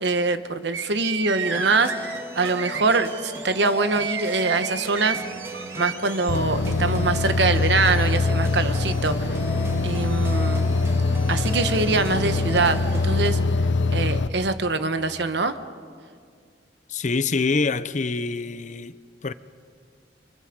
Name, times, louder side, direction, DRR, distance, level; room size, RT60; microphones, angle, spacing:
voice 1, 0.0-5.2 5.8-9.4 9.8-10.6 11.3-13.4 13.9-15.6, right 3 dB, 65° right, 1.2 m, -24 dB
sound 1, 0.7-6.4, right 7 dB, 85° right, 1.7 m, -32 dB
sound 2, 1.4-13.3, equal, 15° right, 1.8 m, -36 dB
sound 3, 6.3-14.3, left 3 dB, 85° left, 0.9 m, -23 dB
voice 2, 16.9-19.3, left 4 dB, 40° left, 0.6 m, -26 dB
29.5 x 24.5 x 5.2 m
head